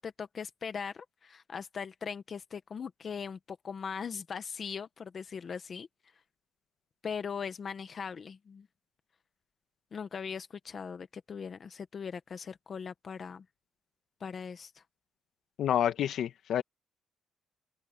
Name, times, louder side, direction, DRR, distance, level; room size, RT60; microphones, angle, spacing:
voice 1, 0.0-5.9 7.0-8.7 9.9-13.4 14.2-14.8, left 6 dB, 40° left, 1.0 m, -40 dB
voice 2, 15.6-16.6, left 10 dB, 65° left, 1.4 m, -28 dB
cardioid pair, 140°, 0 cm